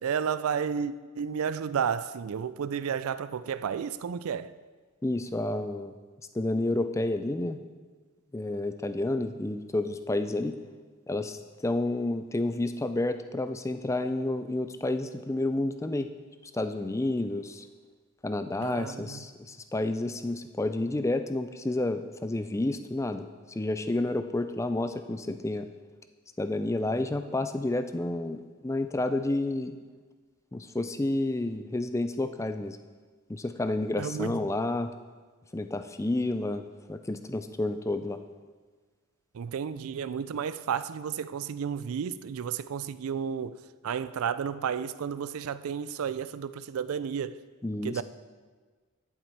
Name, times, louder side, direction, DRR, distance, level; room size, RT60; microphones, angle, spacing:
voice 1, 0.0-4.6 18.6-19.3 34.0-34.5 39.3-47.4 47.8-48.0, right 7 dB, 75° right, 0.4 m, -32 dB
voice 2, 5.0-5.9 6.3-7.6 8.3-10.6 11.1-16.1 16.5-17.7 18.2-25.7 26.4-29.8 30.5-32.8 33.3-34.9 35.5-38.2 47.6-48.0, left 2 dB, 15° left, 0.3 m, -30 dB
11.0 x 7.4 x 4.6 m
head